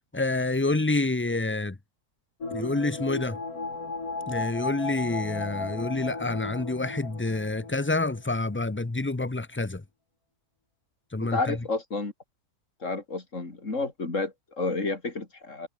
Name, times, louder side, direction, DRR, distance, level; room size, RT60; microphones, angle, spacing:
voice 1, 0.1-1.8 2.5-3.4 4.3-9.8 11.1-11.6, left 2 dB, 20° left, 0.3 m, -28 dB
sound 1, 2.4-8.3 8.6-8.7, left 3 dB, 75° left, 4.0 m, -35 dB
voice 2, 11.2-12.1 12.8-15.7, left 3 dB, 55° left, 3.9 m, -30 dB
omnidirectional pair, 1.5 m